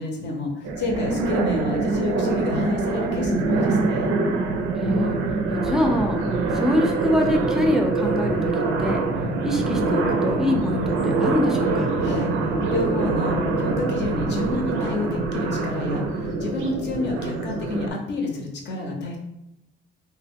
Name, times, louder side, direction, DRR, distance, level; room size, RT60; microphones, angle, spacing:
voice 1, 0.0-4.2 12.0-19.2, left 2 dB, 60° left, 0 dB, 0.7 m, -30 dB
sound 1, 0.6-17.9, right 3 dB, 90° right, 0.4 m, -24 dB
voice 2, 4.8-5.2 5.5-6.2 6.5-8.5 8.8-9.0 9.4-11.9, left 1 dB, 5° right, 1 dB, 0.4 m, -24 dB
2.1 x 2.1 x 3.5 m, 0.87 s
cardioid pair, 90°, 20 cm